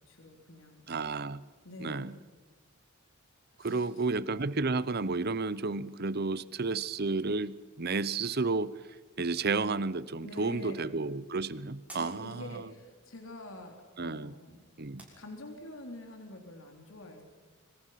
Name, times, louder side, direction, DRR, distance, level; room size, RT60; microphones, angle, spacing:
voice 1, 0.0-0.8 1.6-2.2 3.6-3.9 10.2-11.0 11.9-13.8 14.0-14.6 15.2-17.2, left 1 dB, 65° left, 3 dB, 3.7 m, -46 dB
voice 2, 0.9-1.4 1.8-2.1 3.6-8.8 9.2-12.7 14.0-14.3 14.8-15.1, right 3 dB, 50° right, 17 dB, 0.8 m, -32 dB
sound 1, 10.4-15.9, right 2 dB, 5° right, 6.7 m, -58 dB
26.0 x 25.0 x 5.9 m, 1.3 s
head